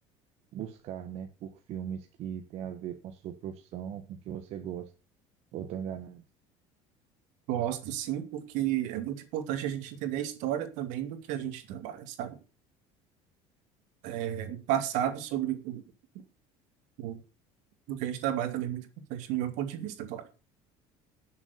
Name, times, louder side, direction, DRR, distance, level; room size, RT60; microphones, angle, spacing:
voice 1, 0.5-4.9 5.5-6.2, right 9 dB, 55° right, 1.4 m, -39 dB
voice 2, 7.5-12.4 14.0-15.8 17.0-17.2 17.9-20.3, right 11 dB, 75° right, 2.3 m, -32 dB
11.0 x 7.2 x 6.8 m
cardioid pair, 130°, 13 cm